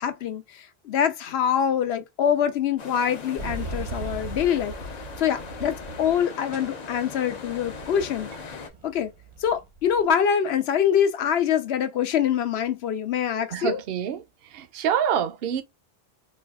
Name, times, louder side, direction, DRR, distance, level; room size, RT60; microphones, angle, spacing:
voice 1, 0.0-4.7 5.2-9.1 9.4-13.8, left 8 dB, 75° left, 0.9 m, -25 dB
sound 1, 2.8-8.7, left 5 dB, 50° left, 0.6 m, -40 dB
sound 2, 3.4-6.2 6.5-10.0, right 2 dB, 40° right, 0.5 m, -39 dB
voice 2, 13.5-15.6, right 8 dB, 70° right, 0.7 m, -27 dB
4.1 x 2.3 x 2.3 m
omnidirectional pair, 1.1 m